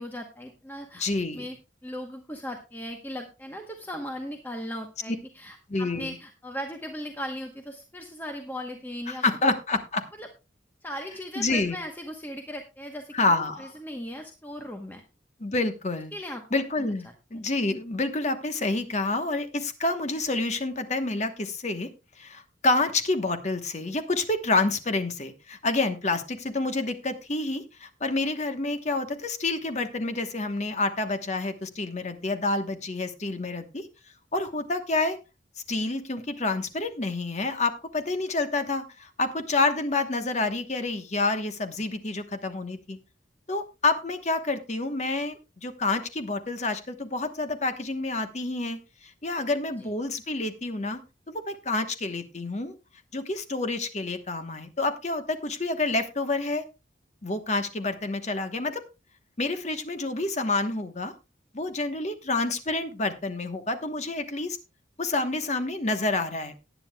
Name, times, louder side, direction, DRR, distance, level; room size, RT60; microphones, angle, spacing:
voice 1, 0.0-1.0 1.3-1.6 1.8-9.2 10.2-10.3 10.8-15.0 16.1-16.4 16.8-16.9 49.7-49.9, equal, 10° left, 4 dB, 1.0 m, -38 dB
voice 2, 1.0-1.4 5.7-6.1 9.1-10.0 11.4-11.8 13.1-13.7 15.4-16.1 16.5-21.9 22.2-33.9 34.3-35.2 35.7-43.0 43.5-51.0 51.3-52.7 53.1-56.6 57.2-58.8 59.4-61.1 61.5-64.6 65.0-66.5, left 2 dB, 40° left, 8 dB, 1.1 m, -28 dB
18.5 x 9.5 x 2.3 m, 0.27 s
head